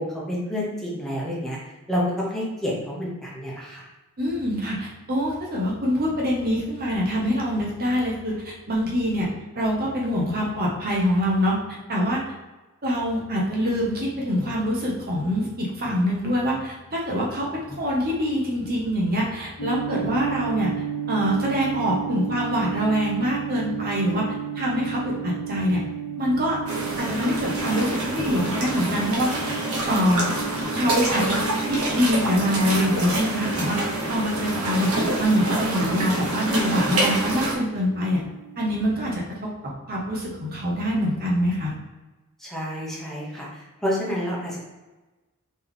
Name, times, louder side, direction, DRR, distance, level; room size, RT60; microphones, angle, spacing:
voice 1, 0.3-1.6 1.9-3.9 42.4-44.6, equal, ahead, -6 dB, 1.0 m, -29 dB
voice 2, 4.2-11.6 11.9-12.2 12.8-20.7 21.1-24.3 24.5-25.8 26.2-26.6 27.0-29.3 29.9-30.2 30.7-34.9 35.2-38.2 38.6-39.5 39.9-41.7, equal, 45° right, -3 dB, 0.9 m, -24 dB
sound 1, 19.6-39.1, right 8 dB, 75° left, 0.5 m, -35 dB
sound 2, 26.7-37.6, right 1 dB, 75° right, 1.1 m, -27 dB
4.2 x 3.1 x 3.5 m, 1.1 s
head